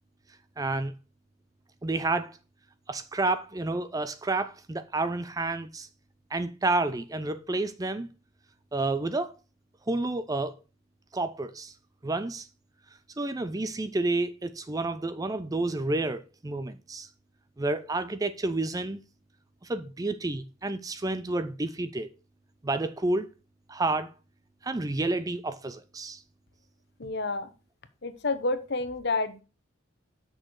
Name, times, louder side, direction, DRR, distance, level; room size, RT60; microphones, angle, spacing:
voice 1, 0.6-0.9 1.8-2.4 2.9-5.9 6.3-8.1 8.7-9.3 9.9-10.5 11.1-11.7 12.0-12.5 13.2-17.1 17.6-19.0 19.6-22.1 22.6-23.3 23.7-24.1 24.6-26.2, right 2 dB, 15° right, 0.4 m, -30 dB
voice 2, 27.0-27.5 28.0-29.4, left 3 dB, 55° left, 0.9 m, -29 dB
6.4 x 6.3 x 4.7 m
head